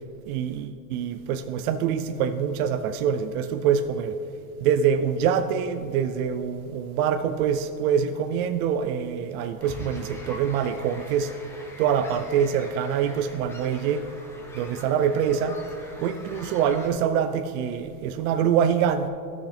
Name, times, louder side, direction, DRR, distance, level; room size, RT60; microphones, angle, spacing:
voice 1, 0.3-4.2 4.6-11.3 11.8-14.1 14.5-15.6 16.0-19.1, right 8 dB, 65° right, 9 dB, 0.6 m, -25 dB
sound 1, 9.6-16.9, left 1 dB, 5° left, 0.6 m, -43 dB
13.0 x 6.5 x 3.3 m, 2.7 s
supercardioid pair, 150°, 46 cm